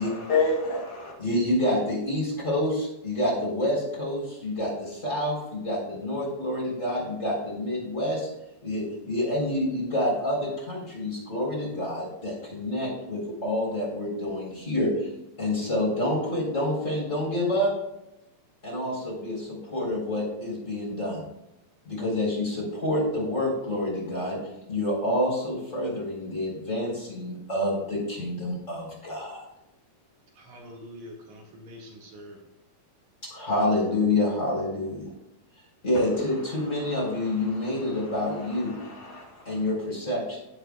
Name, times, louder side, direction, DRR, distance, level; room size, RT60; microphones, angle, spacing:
voice 1, 0.0-1.1 37.5-37.7 38.7-39.4, left 4 dB, 55° left, -1 dB, 3.8 m, -28 dB
voice 2, 1.2-8.3 8.6-15.1 15.4-17.7 18.6-21.2 21.8-24.4 24.7-29.4 33.2-35.1 35.8-38.7 39.5-40.4, left 1 dB, 20° left, -4 dB, 3.9 m, -28 dB
voice 3, 30.3-32.4, equal, 55° right, -1 dB, 3.0 m, -45 dB
16.0 x 8.0 x 2.3 m, 0.86 s
omnidirectional pair, 4.2 m